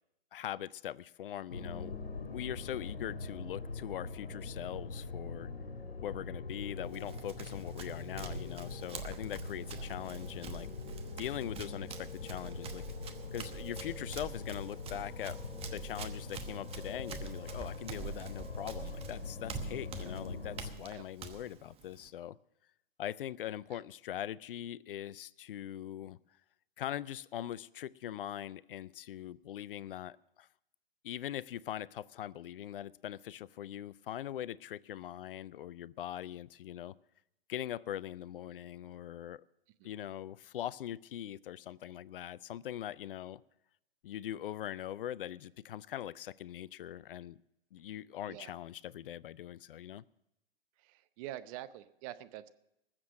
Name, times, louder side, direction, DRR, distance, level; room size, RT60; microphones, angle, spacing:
voice 1, 0.3-5.5 6.0-10.7 11.2-12.8 13.3-15.4 15.7-22.4 23.0-26.2 26.8-30.5 31.0-36.9 37.5-39.4 39.8-43.4 44.0-47.4 47.7-50.0, left 11 dB, 65° left, 21 dB, 0.5 m, -42 dB
sound 1, 1.5-20.7, left 3 dB, 90° left, 1.8 m, -43 dB
Run, 6.8-22.1, right 7 dB, 20° right, 1.0 m, -47 dB
voice 2, 50.8-52.5, right 13 dB, 35° right, 13 dB, 0.7 m, -46 dB
20.0 x 7.5 x 6.3 m, 0.84 s
hypercardioid pair, 120°, 30 cm